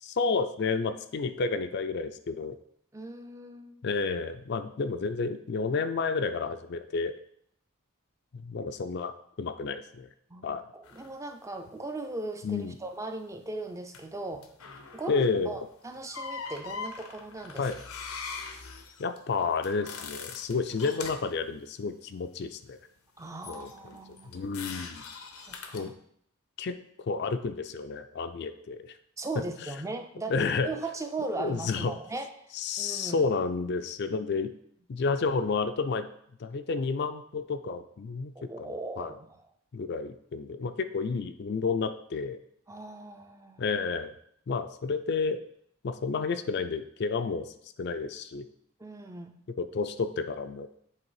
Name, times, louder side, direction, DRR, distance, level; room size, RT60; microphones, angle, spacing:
voice 1, 0.0-2.6 3.8-7.1 8.3-10.1 10.4-10.6 12.4-12.7 15.1-15.6 17.6-17.8 19.0-22.8 23.5-24.0 24.3-25.0 25.7-25.9 26.6-26.8 27.1-28.9 30.3-30.7 31.4-31.9 32.5-34.5 34.9-36.1 36.4-39.1 39.7-42.4 43.6-44.1 44.5-45.4 45.8-47.5 47.8-48.5 49.6-50.7, left 4 dB, 50° left, 10 dB, 0.4 m, -31 dB
voice 2, 2.9-3.8 10.3-14.5 14.9-17.7 23.2-24.5 25.4-25.9 29.2-33.3 38.4-39.4 42.7-43.6 48.8-49.3, right 2 dB, 15° right, 6 dB, 0.4 m, -38 dB
sound 1, 10.8-11.1 13.9-14.1 14.4-15.3 15.9-21.3 23.4-25.9, left 5 dB, 85° left, 0.8 m, -41 dB
7.8 x 3.3 x 4.7 m, 0.68 s
head